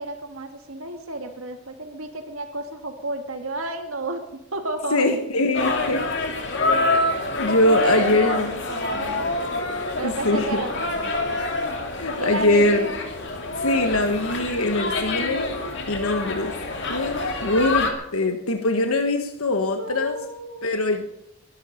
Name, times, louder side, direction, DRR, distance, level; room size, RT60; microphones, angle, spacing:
voice 1, 0.0-4.2 4.5-5.1 5.7-6.0 7.7-9.5 10.0-11.4 12.2-12.9 19.6-20.7, right 2 dB, 80° right, 5 dB, 1.9 m, -32 dB
voice 2, 4.9-6.0 7.4-8.5 10.0-10.6 11.9-12.9 13.5-15.5 15.9-16.5 16.9-20.2 20.6-21.0, left 2 dB, 90° left, 5 dB, 1.4 m, -22 dB
sound 1, 5.5-17.9, left 2 dB, 55° left, 2.7 m, -26 dB
22.5 x 12.0 x 5.2 m, 0.82 s
head